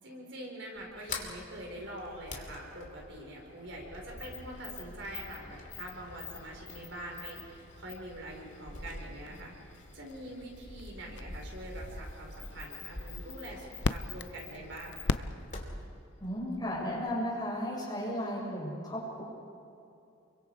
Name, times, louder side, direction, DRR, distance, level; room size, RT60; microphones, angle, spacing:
voice 1, 0.0-9.5 9.9-15.3, right 1 dB, 65° right, -1 dB, 5.1 m, -44 dB
Sliding door, 0.8-17.1, left 3 dB, 40° left, 2.8 m, -46 dB
Firework Fuse, 1.5-15.9, left 3 dB, 60° left, 0.6 m, -43 dB
voice 2, 16.2-19.2, equal, 20° left, -4 dB, 6.4 m, -34 dB
29.5 x 23.5 x 4.9 m, 2.7 s
head